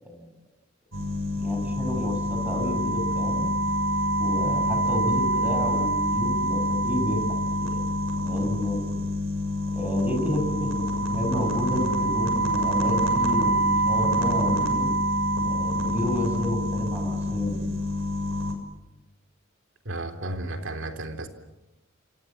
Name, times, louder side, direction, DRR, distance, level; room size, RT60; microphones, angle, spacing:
sound 1, 0.9-18.5, right 1 dB, 80° right, 6.6 m, -26 dB
voice 1, 1.4-3.5 4.2-9.1 9.7-10.8 11.1-14.9 15.4-17.6, equal, 10° right, 5 dB, 6.3 m, -31 dB
voice 2, 19.9-21.3, right 2 dB, 65° right, 7 dB, 3.8 m, -33 dB
29.0 x 27.5 x 7.5 m, 0.98 s
head